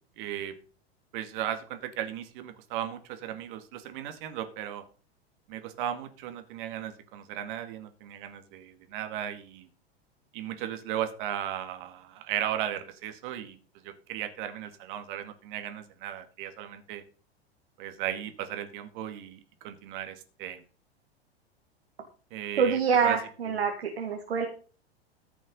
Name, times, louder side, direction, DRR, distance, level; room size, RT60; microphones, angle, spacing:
voice 1, 0.2-0.5 1.1-4.8 5.5-9.7 10.3-13.6 13.8-17.0 17.8-20.6 22.3-23.2 23.5-23.6, right 11 dB, 50° right, 7 dB, 2.2 m, -36 dB
voice 2, 22.6-24.5, right 6 dB, 70° right, 2 dB, 2.3 m, -26 dB
14.5 x 6.2 x 5.4 m, 0.39 s
figure-of-eight pair, 95°, 32 cm